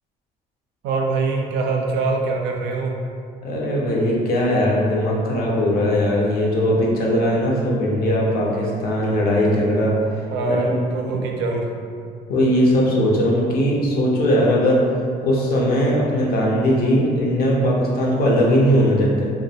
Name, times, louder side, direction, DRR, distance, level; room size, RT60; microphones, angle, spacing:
voice 1, 0.8-2.9 10.3-11.7, right 3 dB, 90° right, 1 dB, 0.4 m, -23 dB
voice 2, 3.4-9.9 10.4-10.8 12.3-14.8 15.2-19.3, equal, 65° left, -3 dB, 0.6 m, -19 dB
2.3 x 2.1 x 2.7 m, 2.3 s
cardioid pair, 110°, 17 cm